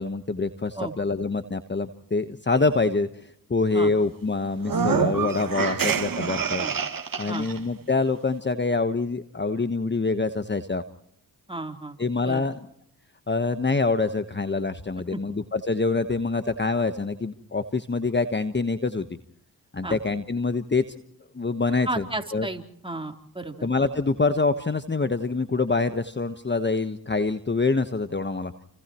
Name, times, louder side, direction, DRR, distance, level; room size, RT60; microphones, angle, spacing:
voice 1, 0.0-3.2 3.5-6.7 7.2-10.8 12.0-12.6 13.3-19.1 19.7-20.8 21.3-22.0 22.3-22.5 23.6-28.5, left 3 dB, 25° left, 9 dB, 1.2 m, -25 dB
sound 1, 4.6-7.6, right 6 dB, 55° right, 2.2 m, -26 dB
voice 2, 6.3-6.7 7.3-7.5 11.5-12.0 12.2-12.4 15.1-15.2 19.8-20.0 21.9-23.7, right 2 dB, 10° right, 3 dB, 3.7 m, -33 dB
29.5 x 29.5 x 3.1 m, 0.73 s
supercardioid pair, 45°, 41 cm